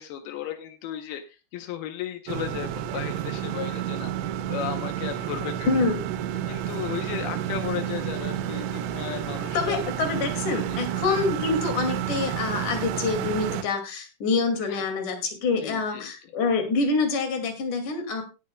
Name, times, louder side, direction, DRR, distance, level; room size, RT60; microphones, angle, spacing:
voice 1, 0.0-4.1 4.5-5.7 6.5-9.8 10.7-10.8 14.7-14.8 15.6-16.1, left 10 dB, 80° left, 6 dB, 2.2 m, -35 dB
sound 1, 2.3-13.6, right 10 dB, 85° right, 3.2 m, -30 dB
voice 2, 5.7-6.0 9.5-18.2, left 4 dB, 50° left, 5 dB, 3.1 m, -26 dB
18.0 x 10.0 x 2.3 m, 0.29 s
omnidirectional pair, 5.7 m